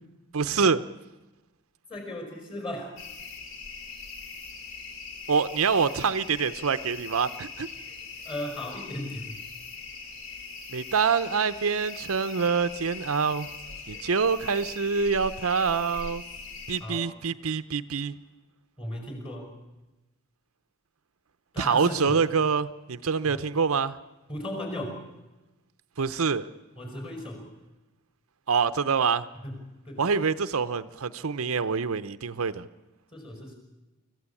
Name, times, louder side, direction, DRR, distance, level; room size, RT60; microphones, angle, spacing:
voice 1, 0.3-0.8 5.3-7.7 10.7-13.5 13.9-16.2 16.7-18.1 21.6-24.0 26.0-26.4 28.5-29.2 30.0-32.7, right 5 dB, 70° right, 13 dB, 0.7 m, -26 dB
voice 2, 1.9-3.0 8.3-9.4 16.8-17.1 18.8-19.5 21.5-22.2 23.3-23.4 24.3-25.0 26.8-27.4 29.4-29.6 29.9-30.0 33.1-33.6, left 1 dB, 25° left, 4 dB, 5.3 m, -36 dB
sound 1, 3.0-16.8, left 5 dB, 60° left, 3.6 m, -41 dB
25.0 x 15.0 x 8.4 m, 1.1 s
head